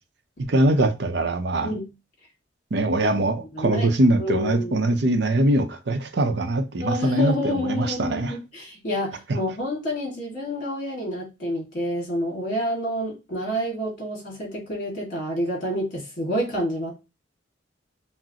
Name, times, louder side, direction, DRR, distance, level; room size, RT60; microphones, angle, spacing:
voice 1, 0.4-1.7 2.7-8.3, right 1 dB, 60° right, 0.6 m, -22 dB
voice 2, 3.5-3.9 4.2-4.9 6.8-16.9, equal, 45° left, 1.9 m, -28 dB
6.0 x 2.0 x 2.8 m
head